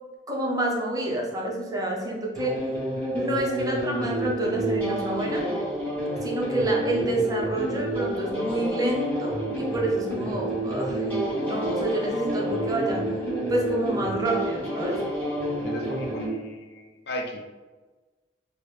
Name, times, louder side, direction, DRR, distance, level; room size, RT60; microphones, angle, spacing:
voice 1, 0.3-2.6 3.1-5.5 6.2-13.1 13.5-15.0, right 1 dB, 20° right, -2 dB, 0.6 m, -28 dB
sound 1, 2.3-16.3, right 1 dB, 10° left, 1.1 m, -29 dB
voice 2, 15.6-17.4, left 1 dB, 65° left, 2 dB, 0.5 m, -36 dB
4.0 x 2.1 x 3.2 m, 1.2 s
head